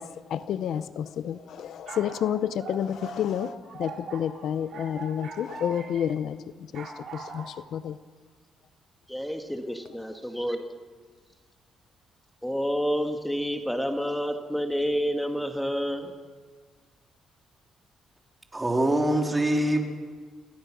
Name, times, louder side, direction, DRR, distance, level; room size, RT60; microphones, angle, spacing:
voice 1, 0.0-8.0, left 9 dB, 75° left, 14 dB, 0.7 m, -30 dB
sound 1, 1.6-6.1 6.7-7.5, right 4 dB, 65° right, 3.7 m, -41 dB
voice 2, 9.1-10.7 12.4-16.1, equal, 5° left, 5 dB, 1.8 m, -29 dB
voice 3, 18.5-19.8, right 1 dB, 15° right, 2 dB, 3.6 m, -23 dB
27.0 x 17.0 x 6.2 m, 1.5 s
cardioid pair, 90°, 0 cm